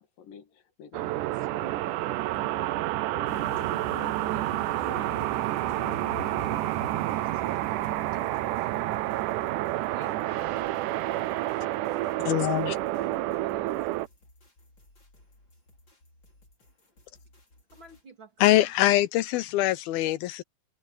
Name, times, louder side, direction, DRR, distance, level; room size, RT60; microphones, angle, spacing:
voice 1, 0.0-2.0 2.2-4.5 4.8-7.5 8.0-8.3, left 7 dB, 70° left, 3.5 m, -50 dB
sound 1, 0.9-14.1, right 16 dB, 75° right, 1.9 m, -29 dB
sound 2, 3.3-12.3 12.8-13.1 13.3-13.5, left 4 dB, 50° left, 3.7 m, -46 dB
sound 3, 6.4-18.1, left 2 dB, 30° left, 6.3 m, -59 dB
voice 2, 9.9-12.2 13.2-13.8 17.7-18.7, right 4 dB, 35° right, 2.9 m, -51 dB
voice 3, 12.3-12.8 18.4-20.4, left 15 dB, 85° left, 2.8 m, -23 dB
omnidirectional pair, 4.2 m